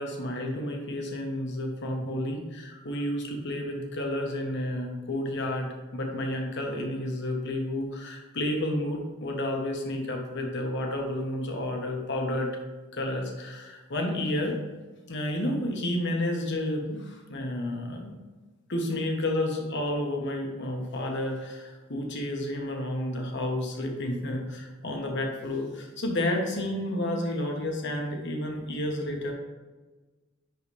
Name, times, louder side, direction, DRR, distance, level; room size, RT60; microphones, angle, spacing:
voice 1, 0.0-12.5 12.9-14.6 15.1-18.2 18.7-29.3, left 1 dB, 60° left, 2 dB, 1.3 m, -31 dB
10.5 x 4.0 x 3.3 m, 1.3 s
head